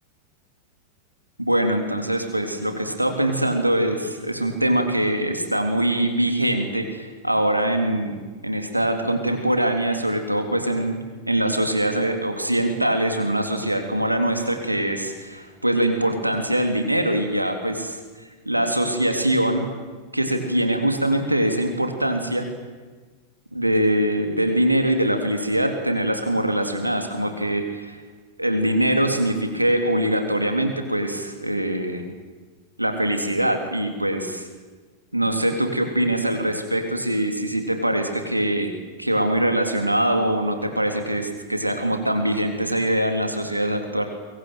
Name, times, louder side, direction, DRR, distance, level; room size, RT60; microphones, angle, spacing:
voice 1, 1.4-11.0 11.3-18.0 18.5-19.7 20.1-22.5 23.5-28.0 28.4-32.0 32.8-34.5 35.1-38.7 39.0-44.0, right 1 dB, 85° right, 5 dB, 3.6 m, -23 dB
24.0 x 23.0 x 9.2 m, 1.4 s
figure-of-eight pair, 90°, 0 cm